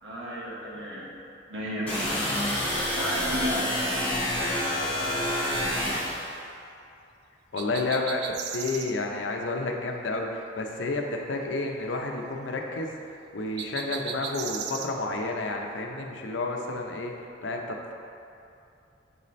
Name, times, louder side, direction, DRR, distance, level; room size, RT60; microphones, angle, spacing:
voice 1, 0.0-1.1 1.5-2.2 2.9-3.7, equal, 80° right, -7 dB, 1.4 m, -33 dB
sound 1, 1.9-6.3, left 1 dB, 10° left, 1.4 m, -28 dB
voice 2, 7.5-8.2 8.5-12.9 13.3-17.9, left 2 dB, 80° left, 1 dB, 0.6 m, -30 dB
sound 2, 7.6-8.9 13.6-14.9, right 7 dB, 60° right, 0.4 m, -36 dB
7.6 x 4.1 x 3.1 m, 2.6 s
head